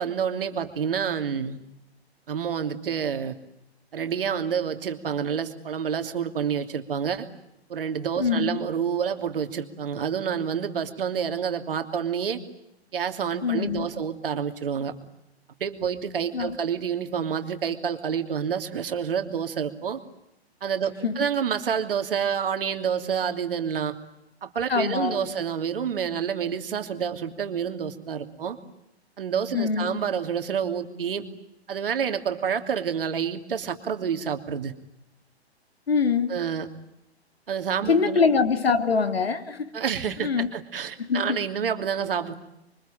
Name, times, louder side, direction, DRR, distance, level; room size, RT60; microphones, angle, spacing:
voice 1, 0.0-1.6 2.3-3.3 3.9-7.3 7.7-12.4 12.9-14.9 15.6-20.0 20.6-23.9 24.4-28.6 29.2-31.3 31.7-34.7 36.3-36.7 37.5-38.2 39.7-42.4, right 7 dB, 55° right, 2.9 m, -28 dB
voice 2, 8.2-8.6 13.4-13.9 16.3-16.5 21.0-21.2 24.7-25.3 29.5-30.0 35.9-36.3 37.9-39.7 40.2-40.5 41.0-41.4, left 5 dB, 65° left, 2.8 m, -24 dB
27.0 x 24.5 x 9.0 m
figure-of-eight pair, 120°, 33 cm